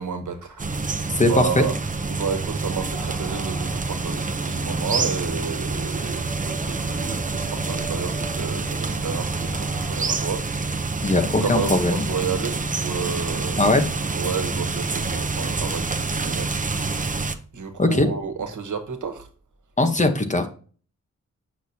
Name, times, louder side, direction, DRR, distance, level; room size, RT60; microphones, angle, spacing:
voice 1, 0.0-1.7 2.1-13.8 14.1-19.3, right 5 dB, 90° right, 1.2 m, -31 dB
sound 1, 0.6-17.3, right 3 dB, 25° right, 0.6 m, -27 dB
voice 2, 1.2-1.6 11.0-12.0 13.6-13.8 17.8-18.1 19.8-20.5, left 2 dB, 25° left, 1.0 m, -20 dB
sound 2, 2.9-9.9, right 2 dB, 5° left, 2.9 m, -39 dB
8.0 x 6.2 x 2.7 m
wide cardioid pair, 150°, 30 cm